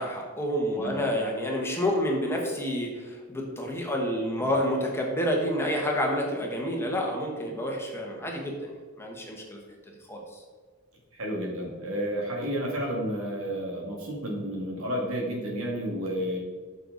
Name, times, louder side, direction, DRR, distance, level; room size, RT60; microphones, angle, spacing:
voice 1, 0.0-9.6 10.1-10.4, equal, 10° left, 0 dB, 1.4 m, -29 dB
voice 2, 11.1-16.4, equal, 85° right, -1 dB, 2.3 m, -31 dB
8.9 x 6.7 x 4.1 m, 1.5 s
head